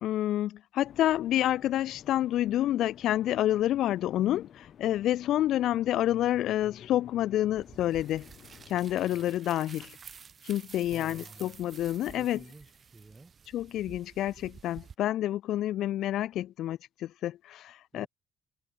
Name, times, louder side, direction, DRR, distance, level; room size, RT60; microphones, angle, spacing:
voice 1, 0.0-8.3 8.7-10.0 10.4-12.4 13.5-18.1, left 13 dB, 75° left, 0.4 m, -28 dB
sound 1, 0.8-9.4, left 9 dB, 60° left, 4.1 m, -53 dB
sound 2, 7.5-14.9, right 6 dB, 45° right, 4.3 m, -51 dB
voice 2, 10.9-11.5 12.2-13.3 17.9-18.1, right 3 dB, 25° right, 3.9 m, -51 dB
cardioid pair, 75°, 0 cm